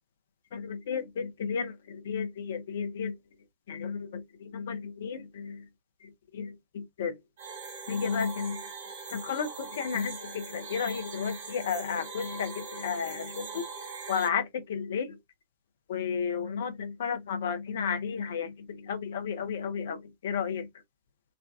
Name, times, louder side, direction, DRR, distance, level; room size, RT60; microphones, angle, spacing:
voice 1, 0.5-3.2 3.7-5.7 6.0-7.2 7.9-8.6 9.1-13.7 14.1-15.2 15.9-20.7, left 6 dB, 60° left, 0.7 m, -33 dB
sound 1, 7.4-14.3, right 4 dB, 65° right, 1.6 m, -41 dB
3.6 x 2.3 x 2.3 m
figure-of-eight pair, 90°, 0 cm